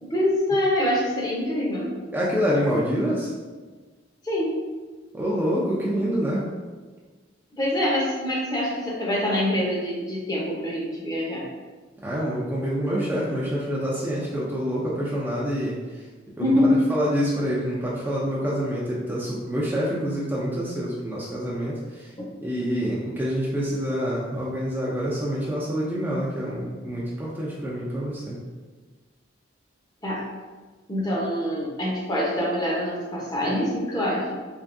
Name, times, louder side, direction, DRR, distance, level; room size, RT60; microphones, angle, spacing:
voice 1, 0.0-2.0 4.2-4.6 7.6-11.5 16.4-16.8 30.0-30.3 30.9-34.4, left 1 dB, 20° left, -4 dB, 0.8 m, -25 dB
voice 2, 2.1-3.3 5.1-6.5 12.0-15.8 16.4-22.1 22.4-28.4, equal, 10° right, -7 dB, 0.5 m, -26 dB
3.7 x 3.5 x 2.6 m, 1.4 s
head